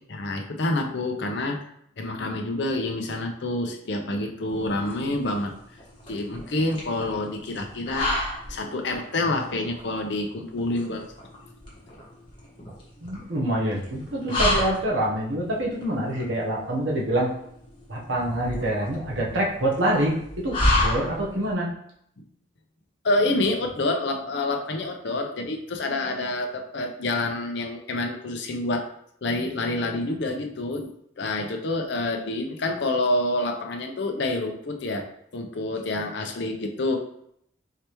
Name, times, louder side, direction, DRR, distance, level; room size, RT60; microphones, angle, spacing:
voice 1, 0.1-1.6 2.0-5.5 6.1-8.1 8.5-11.1 22.2-22.3 23.0-28.9 29.2-30.9 31.2-35.1 35.3-37.0, left 2 dB, 70° left, 3 dB, 0.6 m, -27 dB
sound 1, 4.5-21.5, left 1 dB, 25° left, 1.2 m, -30 dB
voice 2, 13.0-17.3 17.9-21.7, right 1 dB, 80° right, -3 dB, 1.0 m, -26 dB
4.8 x 3.3 x 3.0 m, 0.71 s
head